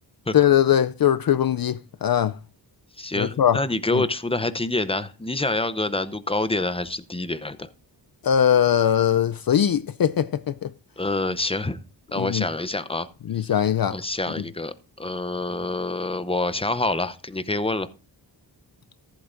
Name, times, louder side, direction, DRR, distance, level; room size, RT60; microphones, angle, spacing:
voice 1, 0.3-2.3 3.2-3.6 3.9-4.0 8.2-10.7 12.2-12.4 13.3-14.0, left 9 dB, 55° left, 0.5 m, -21 dB
voice 2, 3.0-7.7 11.0-11.8 12.1-13.1 13.4-13.5 13.9-17.9, left 2 dB, 15° left, 0.7 m, -27 dB
14.5 x 8.1 x 2.5 m
wide cardioid pair, 75°, 43 cm